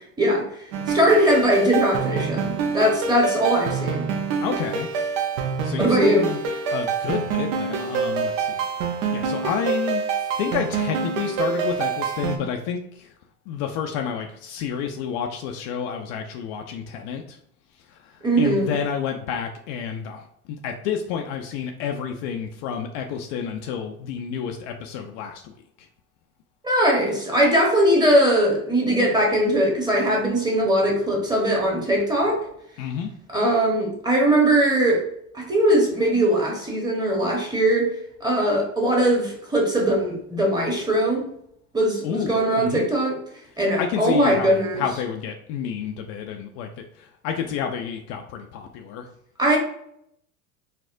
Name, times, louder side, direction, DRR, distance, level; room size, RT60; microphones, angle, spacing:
sound 1, 0.7-12.4, right 5 dB, 65° right, 0.7 m, -26 dB
voice 1, 0.9-4.1 5.8-6.3 18.2-18.8 26.6-32.4 33.3-35.0 35.3-37.9 38.2-41.3 41.7-43.2 43.6-44.8 49.4-49.6, right 1 dB, 10° right, -1 dB, 0.9 m, -20 dB
voice 2, 4.4-4.9 5.6-6.4 6.7-10.0 10.4-13.1 13.5-17.4 17.9-20.2 20.6-25.5 32.8-33.1 42.0-42.8 43.8-49.1, left 7 dB, 55° left, 4 dB, 0.5 m, -30 dB
4.2 x 2.0 x 2.5 m, 0.72 s
hypercardioid pair, 90°, 43 cm